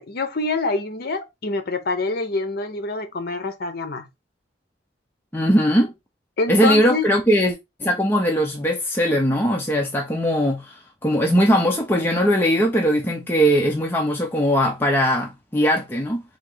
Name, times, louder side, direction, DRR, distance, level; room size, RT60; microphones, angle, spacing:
voice 1, 0.0-4.1 6.4-7.1, left 3 dB, 55° left, 0.7 m, -26 dB
voice 2, 5.3-5.9 6.5-16.2, equal, 10° left, 0.5 m, -20 dB
3.8 x 2.8 x 3.8 m
head